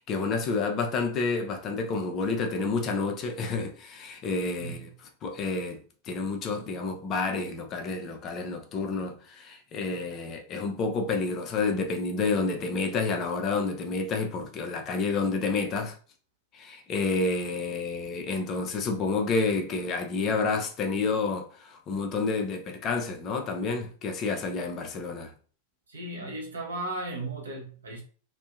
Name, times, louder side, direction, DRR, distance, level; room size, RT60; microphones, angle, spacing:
voice 1, 0.0-4.9 5.2-15.9 16.5-25.3, left 4 dB, 35° left, 0.4 m, -29 dB
voice 2, 4.6-4.9 25.9-28.0, right 2 dB, 70° right, 0.7 m, -36 dB
2.6 x 2.1 x 2.3 m
figure-of-eight pair, 90°, 0 cm